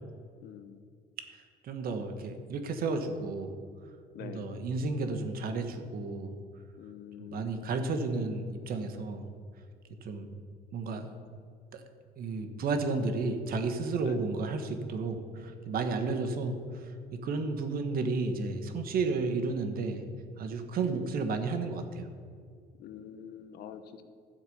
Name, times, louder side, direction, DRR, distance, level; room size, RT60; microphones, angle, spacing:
voice 1, 0.4-0.8 4.1-4.5 6.8-7.7 14.0-14.3 22.8-24.0, left 9 dB, 70° left, 10 dB, 0.9 m, -46 dB
voice 2, 1.6-3.5 4.2-6.3 7.2-9.3 10.0-10.3 10.7-11.1 11.7-11.8 12.2-16.6 17.1-20.0 20.4-22.1, right 3 dB, 60° right, 7 dB, 1.4 m, -32 dB
13.0 x 7.4 x 5.5 m, 2.2 s
cardioid pair, 110°, 17 cm